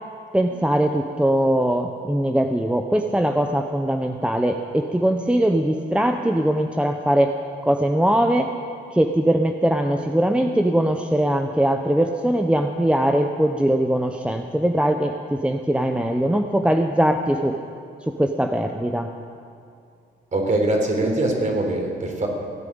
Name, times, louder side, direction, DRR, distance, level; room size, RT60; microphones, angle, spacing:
voice 1, 0.3-7.3 7.6-8.5 8.9-17.6 18.1-19.1, right 1 dB, 5° right, 5 dB, 0.8 m, -21 dB
voice 2, 20.3-22.3, right 2 dB, 40° right, 1 dB, 3.8 m, -22 dB
17.0 x 8.9 x 8.7 m, 2.4 s
cardioid pair, 90°, 20 cm